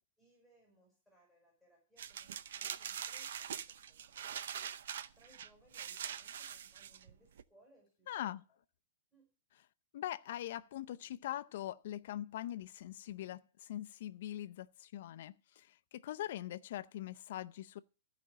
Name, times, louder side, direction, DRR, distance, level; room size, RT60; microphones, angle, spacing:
voice 1, 0.2-4.4 5.1-8.4 9.1-9.3, right 1 dB, 5° right, 5.8 m, -68 dB
sound 1, 2.0-7.4, right 9 dB, 70° right, 0.6 m, -43 dB
voice 2, 8.1-8.4 9.9-17.8, left 12 dB, 55° left, 0.6 m, -42 dB
15.0 x 5.1 x 7.6 m
hypercardioid pair, 160°, 0 cm